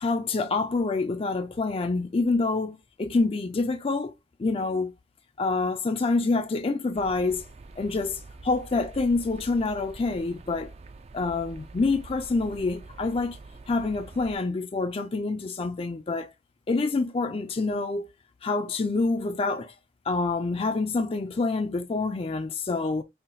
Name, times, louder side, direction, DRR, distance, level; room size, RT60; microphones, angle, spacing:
voice 1, 0.0-4.1 4.4-4.9 5.4-7.4 7.8-10.7 11.1-13.4 13.7-16.3 16.7-18.1 18.4-19.7 20.1-23.0, left 3 dB, 35° left, 0.4 m, -27 dB
sound 1, 6.9-14.4, right 3 dB, 35° right, 0.4 m, -46 dB
5.6 x 2.3 x 2.6 m
head